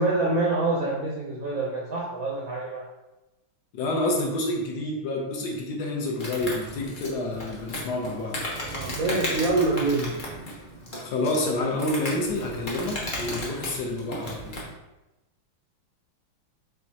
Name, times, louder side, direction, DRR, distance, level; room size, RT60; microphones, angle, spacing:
voice 1, 0.0-2.8 8.6-10.2, right 2 dB, 70° right, -4 dB, 0.8 m, -26 dB
voice 2, 3.7-8.4 11.0-14.5, left 2 dB, 65° left, 0 dB, 1.1 m, -28 dB
Insect, 6.2-14.7, left 1 dB, 45° left, 0.6 m, -35 dB
5.2 x 3.5 x 2.8 m, 1.0 s
omnidirectional pair, 2.4 m